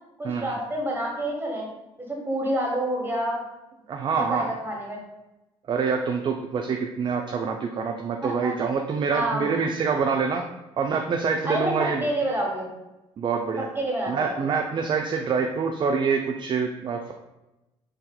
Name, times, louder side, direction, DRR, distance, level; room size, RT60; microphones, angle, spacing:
voice 1, 0.2-1.7 2.0-3.4 4.1-5.0 8.2-8.5 9.1-9.5 11.4-12.7 13.6-14.3, right 1 dB, 15° right, -2 dB, 1.4 m, -28 dB
voice 2, 3.9-4.5 5.7-10.4 10.8-12.0 13.2-13.7 14.1-17.1, right 5 dB, 30° right, 3 dB, 0.4 m, -26 dB
5.5 x 2.7 x 2.2 m, 0.98 s
figure-of-eight pair, 50°, 15 cm